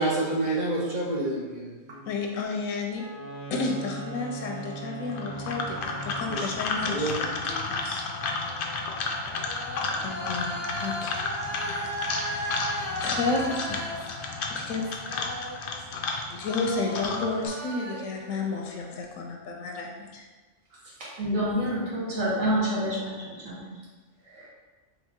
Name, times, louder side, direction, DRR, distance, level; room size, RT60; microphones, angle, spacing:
voice 1, 0.0-2.1 6.3-6.5 6.8-7.3, right 2 dB, 35° right, -5 dB, 1.0 m, -28 dB
voice 2, 2.1-3.0 3.5-8.1 10.0-11.2 11.7-12.7 13.0-14.9 16.1-20.2, left 3 dB, 85° left, 1 dB, 1.0 m, -32 dB
Wind instrument woodwind instrument, 2.9-6.6, right 4 dB, 70° right, 1.2 m, -39 dB
sound 1, 5.1-17.5, left 3 dB, 60° left, 0.6 m, -32 dB
sound 2, 7.4-16.1 16.4-19.0, equal, 10° right, 1.0 m, -37 dB
voice 3, 21.0-23.7 24.3-24.5, equal, 85° right, -6 dB, 1.7 m, -28 dB
4.0 x 3.4 x 3.6 m, 1.3 s
omnidirectional pair, 1.3 m